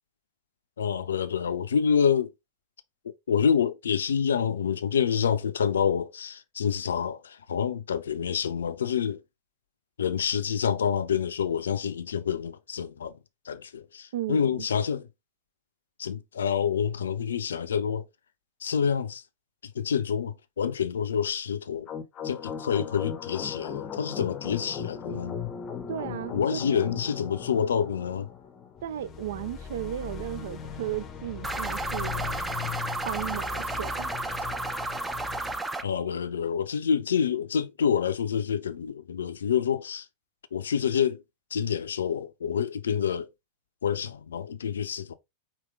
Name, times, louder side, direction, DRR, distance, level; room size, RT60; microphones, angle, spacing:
voice 1, 0.8-2.3 3.0-9.2 10.0-13.2 13.4-15.1 16.0-18.1 18.6-19.2 19.6-21.9 22.2-25.4 26.3-28.3 35.8-40.1 40.5-41.2 41.5-43.3 43.8-45.1, left 7 dB, 65° left, 0.4 m, -27 dB
voice 2, 14.1-14.7 25.9-26.9 28.8-32.4 33.0-34.1, right 12 dB, 60° right, 0.4 m, -35 dB
sound 1, 21.9-35.6, left 7 dB, 30° left, 0.6 m, -38 dB
sound 2, 31.4-35.8, right 2 dB, 10° right, 0.5 m, -32 dB
5.0 x 3.0 x 3.5 m
figure-of-eight pair, 90°, 0 cm